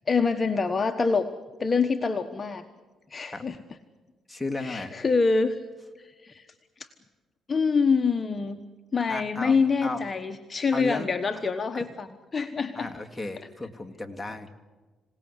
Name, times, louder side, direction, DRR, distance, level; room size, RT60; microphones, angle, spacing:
voice 1, 0.1-1.3 1.6-2.7 3.1-3.6 4.6-5.6 6.0-6.5 6.8-6.9 7.5-8.6 8.9-12.9, left 4 dB, 30° left, 6 dB, 1.3 m, -26 dB
voice 2, 4.3-5.0 9.1-9.6 9.8-10.0 10.7-11.1 11.7-11.9 12.7-14.5, left 2 dB, 5° left, 2 dB, 2.3 m, -34 dB
26.5 x 18.0 x 8.3 m, 1.3 s
cardioid pair, 90°, 0 cm